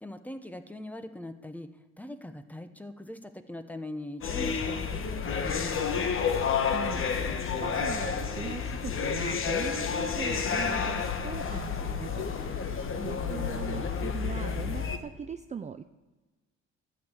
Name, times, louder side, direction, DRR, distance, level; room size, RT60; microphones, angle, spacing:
voice 1, 0.0-1.7 2.0-6.1 12.9-13.5, left 1 dB, 5° left, 9 dB, 0.8 m, -41 dB
sound 1, 4.2-15.0, left 6 dB, 45° left, 1.1 m, -30 dB
voice 2, 6.6-12.7 12.9-15.8, right 6 dB, 25° right, 9 dB, 0.4 m, -40 dB
12.0 x 6.4 x 8.3 m, 1.2 s
cardioid pair, 100°, 29 cm